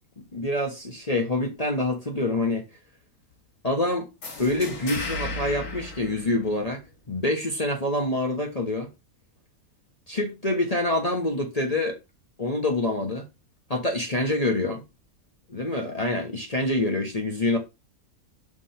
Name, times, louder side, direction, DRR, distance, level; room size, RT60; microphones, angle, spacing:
voice 1, 0.3-2.6 3.6-4.1 4.4-6.8 7.1-8.9 10.1-12.0 12.4-13.2 13.7-14.8 15.5-17.6, left 2 dB, 30° left, 1.2 m, -26 dB
sound 1, 4.2-6.9, left 2 dB, 75° left, 2.2 m, -35 dB
6.1 x 3.6 x 5.6 m
omnidirectional pair, 1.6 m